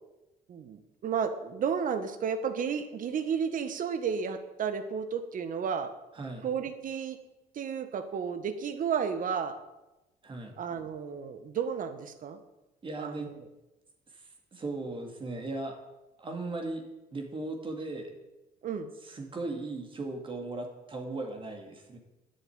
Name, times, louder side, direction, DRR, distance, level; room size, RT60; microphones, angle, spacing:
voice 1, 0.5-5.9 6.4-7.2 7.5-9.6 10.6-12.4 13.0-13.2 18.6-18.9, right 7 dB, 50° right, 9 dB, 1.6 m, -32 dB
voice 2, 6.1-6.5 10.2-10.6 12.8-13.3 14.1-15.8 16.2-18.1 19.0-22.0, right 2 dB, 30° right, 2 dB, 2.5 m, -37 dB
10.5 x 8.1 x 8.9 m, 0.99 s
cardioid pair, 110°, 17 cm